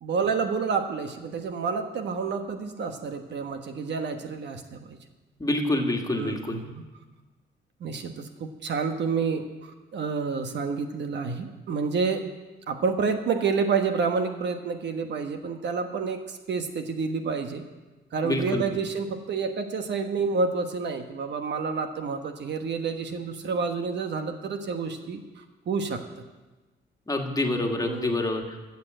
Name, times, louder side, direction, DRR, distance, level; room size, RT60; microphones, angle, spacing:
voice 1, 0.0-5.0 6.1-6.8 7.8-12.2 12.7-17.6 18.1-26.0 27.8-28.2, right 5 dB, 60° right, 6 dB, 1.3 m, -29 dB
voice 2, 5.4-6.6 18.2-18.6 27.1-28.4, left 2 dB, 20° left, 2 dB, 1.9 m, -26 dB
13.5 x 7.0 x 7.8 m, 1.2 s
cardioid pair, 90°, 20 cm